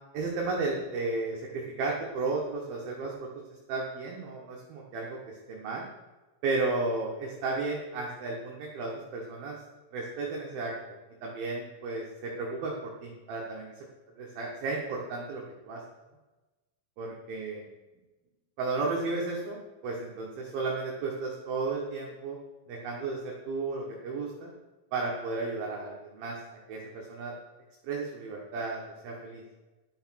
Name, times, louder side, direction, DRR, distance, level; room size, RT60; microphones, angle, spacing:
voice 1, 0.1-3.3 3.7-5.9 6.4-9.6 9.9-13.7 14.2-15.8 17.0-17.6 18.6-22.4 22.7-24.5 24.9-26.4 26.7-27.3 27.8-29.4, right 3 dB, 65° right, -3 dB, 2.8 m, -34 dB
11.5 x 6.4 x 6.2 m, 1.2 s
omnidirectional pair, 5.2 m